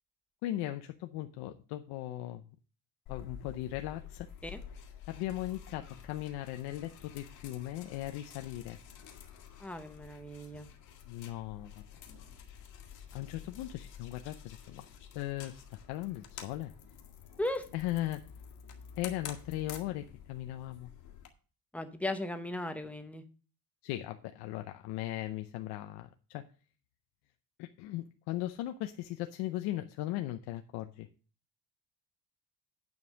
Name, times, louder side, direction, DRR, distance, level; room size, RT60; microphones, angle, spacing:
voice 1, 0.4-2.4 3.1-4.3 5.1-8.8 11.1-11.7 13.1-14.9 15.1-16.7 17.7-18.2 19.0-20.9 23.8-26.4 27.6-31.1, left 15 dB, 85° left, 7 dB, 0.8 m, -38 dB
sound 1, 3.1-21.3, left 7 dB, 55° left, 1.7 m, -50 dB
voice 2, 9.6-10.7 17.4-17.7 21.7-23.2, left 1 dB, 5° left, 7 dB, 0.8 m, -37 dB
9.6 x 5.4 x 6.2 m, 0.38 s
cardioid pair, 165°, 38 cm